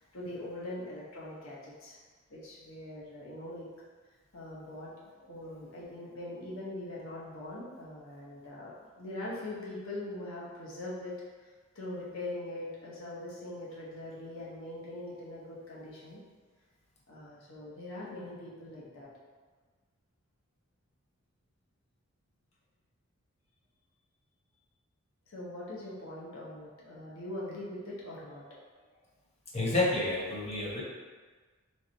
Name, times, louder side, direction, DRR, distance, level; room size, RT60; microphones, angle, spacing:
voice 1, 0.0-2.0 2.3-3.7 4.3-16.2 17.1-19.1 25.3-29.0, left 1 dB, 85° left, -6 dB, 1.1 m, -42 dB
voice 2, 29.5-30.8, left 2 dB, 30° left, -4 dB, 0.9 m, -29 dB
3.5 x 3.3 x 4.0 m, 1.4 s
head